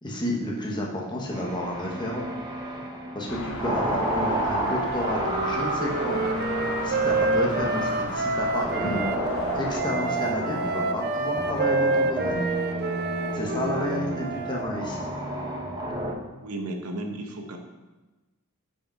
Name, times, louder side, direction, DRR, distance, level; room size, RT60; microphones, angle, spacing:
voice 1, 0.0-2.3 3.1-6.2 6.8-9.1 9.5-12.4 13.3-15.1, left 1 dB, 20° left, -2 dB, 1.0 m, -31 dB
sound 1, 1.3-16.1, right 1 dB, 20° right, 0.8 m, -31 dB
sound 2, 3.3-9.8, left 2 dB, 65° left, 0.8 m, -35 dB
Wind instrument woodwind instrument, 4.6-9.2 9.8-14.6, right 3 dB, 50° right, 0.5 m, -28 dB
voice 2, 16.4-17.6, right 1 dB, 75° right, 3 dB, 0.9 m, -34 dB
5.7 x 4.8 x 4.2 m, 1.1 s
head